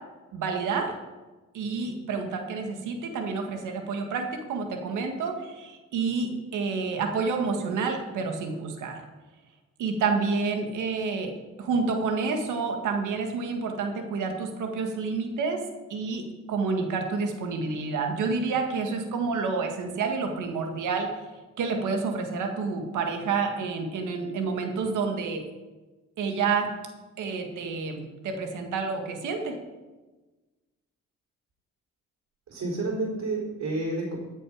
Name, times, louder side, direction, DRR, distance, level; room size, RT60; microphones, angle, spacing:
voice 1, 0.3-0.9 1.5-9.0 9.8-11.3 11.6-15.6 15.9-16.2 16.5-21.1 21.6-25.4 26.2-26.7 27.2-29.6, right 4 dB, 80° right, 4 dB, 1.9 m, -29 dB
voice 2, 32.5-34.2, right 2 dB, 60° right, -2 dB, 4.0 m, -30 dB
14.0 x 6.8 x 5.0 m, 1.2 s
cardioid pair, 90°, 30 cm